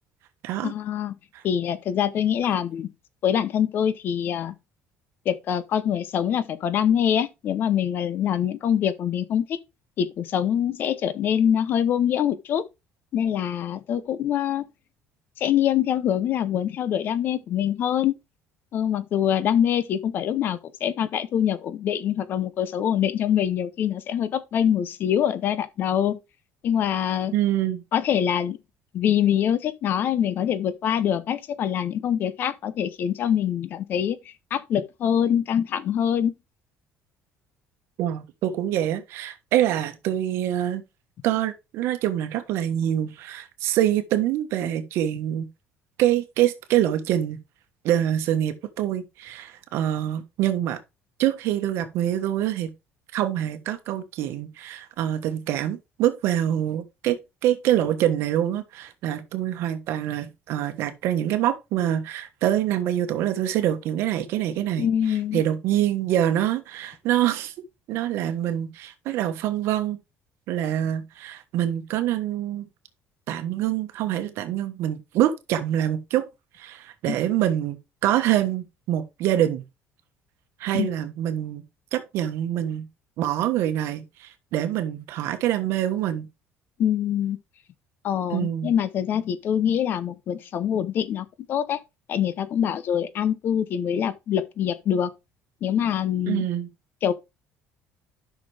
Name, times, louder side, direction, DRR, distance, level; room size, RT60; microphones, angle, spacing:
voice 1, 0.6-1.1 1.4-2.9 3.2-4.5 5.3-9.6 10.0-12.6 13.1-14.6 15.4-18.1 18.7-26.2 26.6-27.3 27.9-28.6 28.9-34.2 34.5-36.3 64.8-65.4 77.1-77.2 80.8-80.9 86.8-87.4 88.0-91.8 92.1-95.1 95.6-96.5 97.0-97.1, left 9 dB, 50° left, 0.8 m, -24 dB
voice 2, 27.3-27.8 38.0-40.8 41.2-45.5 46.0-47.4 47.8-50.8 51.2-52.7 53.1-64.9 65.3-67.5 67.9-70.0 70.5-72.7 73.3-76.3 76.6-77.8 78.0-79.6 80.6-81.6 81.9-82.9 83.2-86.3 88.3-88.7 96.3-96.7, right 12 dB, 70° right, 1.3 m, -25 dB
10.5 x 6.0 x 3.4 m
cardioid pair, 145°, 5 cm